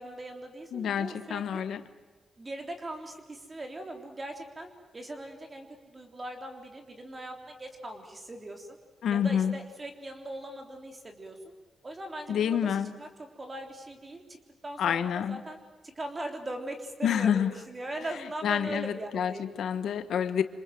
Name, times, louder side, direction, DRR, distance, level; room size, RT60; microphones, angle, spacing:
voice 1, 0.0-1.6 2.4-8.8 9.1-11.5 11.8-14.4 14.6-15.6 16.0-19.5, right 1 dB, 25° right, 4 dB, 3.6 m, -40 dB
voice 2, 0.7-1.8 9.0-9.6 12.3-12.9 14.8-15.4 17.0-17.5 18.4-20.4, left 8 dB, 85° left, 11 dB, 1.4 m, -28 dB
27.0 x 27.0 x 7.7 m, 1.3 s
wide cardioid pair, 160°, 0 cm